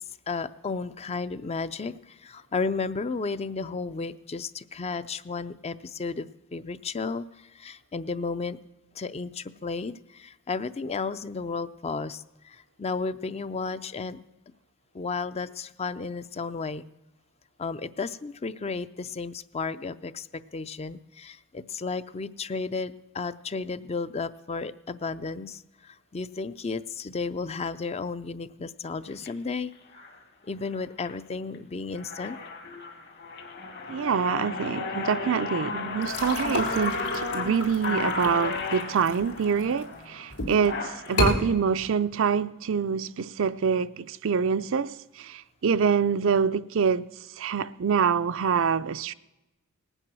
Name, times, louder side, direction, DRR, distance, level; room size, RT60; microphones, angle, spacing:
voice 1, 0.3-8.6 9.0-14.2 14.9-16.8 17.6-29.7 30.5-32.4, left 4 dB, 30° left, 0.4 m, -33 dB
sound 1, 29.1-29.3 29.9-30.2 30.7-31.1 31.5-31.6 31.9-41.3, left 3 dB, 50° left, 1.7 m, -34 dB
voice 2, 33.9-47.1 47.4-49.1, right 6 dB, 60° right, 0.4 m, -26 dB
sound 2, 36.0-39.8 40.3-40.7 41.1-41.4, left 2 dB, 80° left, 2.8 m, -30 dB
19.0 x 9.0 x 6.1 m
head